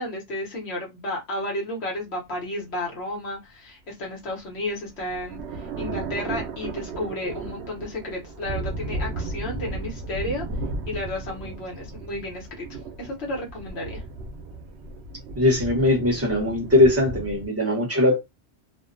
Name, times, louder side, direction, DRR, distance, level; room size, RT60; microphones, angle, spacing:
voice 1, 0.0-10.4 10.9-12.6 13.0-14.0, left 1 dB, 75° left, 1.1 m, -32 dB
sound 1, 4.4-17.5, right 3 dB, 80° right, 0.8 m, -35 dB
voice 2, 15.4-18.2, left 1 dB, 15° right, 0.8 m, -20 dB
2.6 x 2.1 x 2.5 m
omnidirectional pair, 1.1 m